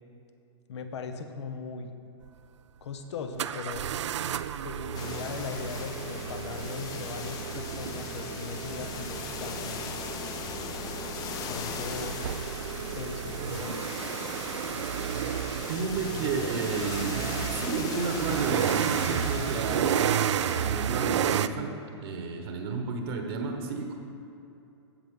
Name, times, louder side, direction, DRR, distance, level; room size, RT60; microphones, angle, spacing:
voice 1, 0.7-1.9 2.8-3.9 4.6-10.0 11.5-12.2 12.9-13.9, left 5 dB, 70° left, 7 dB, 0.9 m, -39 dB
sound 1, 2.2-2.3 3.4-21.5, right 9 dB, 75° right, 0.4 m, -32 dB
sound 2, 4.9-20.7, left 6 dB, 25° left, 0.6 m, -39 dB
voice 2, 15.7-17.2 17.5-20.0 20.6-21.8 22.0-23.9, right 4 dB, 55° right, 3 dB, 1.2 m, -32 dB
15.5 x 5.6 x 3.8 m, 2.7 s
hypercardioid pair, 130°, 15 cm